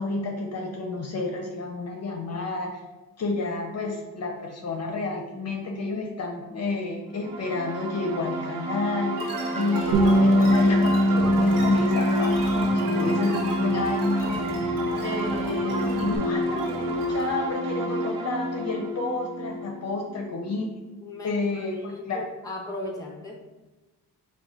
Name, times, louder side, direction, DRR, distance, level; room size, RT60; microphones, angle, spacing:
voice 1, 0.0-2.8 3.2-9.2 9.5-14.4 15.0-20.7 21.2-22.2, left 3 dB, 45° left, 0 dB, 0.7 m, -30 dB
sound 1, 7.2-20.7, equal, 85° right, 0.7 m, -30 dB
sound 2, 9.2-17.5, right 1 dB, 65° right, 1.2 m, -35 dB
Bass guitar, 9.9-14.6 15.0-16.2, equal, 50° right, 0.7 m, -23 dB
voice 2, 21.0-23.4, left 1 dB, 10° left, 0 dB, 0.7 m, -37 dB
3.7 x 2.4 x 4.5 m, 1.1 s
cardioid pair, 125°, 36 cm